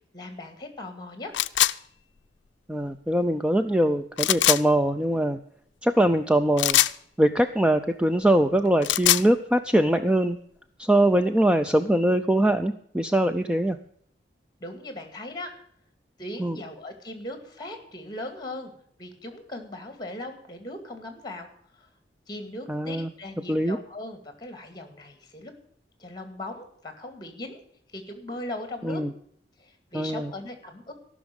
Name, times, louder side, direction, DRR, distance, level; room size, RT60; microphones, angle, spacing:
voice 1, 0.1-1.4 14.6-15.6 16.2-18.7 19.0-21.5 21.7-21.9 22.3-25.5 26.0-27.6 27.9-29.0 29.6-30.9, left 1 dB, 25° left, 7 dB, 2.2 m, -38 dB
sound 1, 1.3-1.7 4.2-4.6 6.6-7.0 8.7-9.3, left 14 dB, 80° left, 0.4 m, -21 dB
voice 2, 2.7-5.4 5.8-6.8 7.2-10.4 10.8-13.8 16.4-16.6 22.7-23.1 23.5-23.8 28.8-29.1 29.9-30.3, right 1 dB, 5° right, 8 dB, 0.4 m, -22 dB
14.0 x 6.2 x 8.8 m, 0.66 s
head